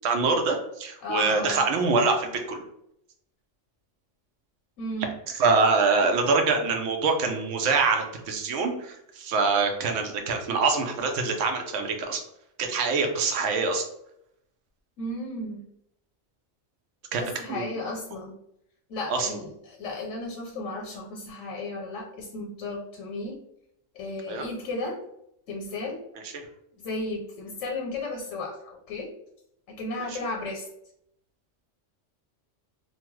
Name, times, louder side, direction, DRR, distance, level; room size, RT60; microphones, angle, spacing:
voice 1, 0.0-2.6 5.3-12.2 12.6-13.9 17.1-17.2 17.5-17.8 19.1-19.3 24.3-24.4 26.2-26.3 30.0-30.2, right 4 dB, 80° right, 4 dB, 0.9 m, -25 dB
voice 2, 1.0-1.6 4.8-5.1 15.0-15.6 17.2-18.4 18.9-23.4 23.9-25.0 25.5-26.0 26.8-29.1 29.7-30.7, left 2 dB, 85° left, 1 dB, 0.9 m, -34 dB
2.9 x 2.1 x 3.0 m, 0.77 s
omnidirectional pair, 1.3 m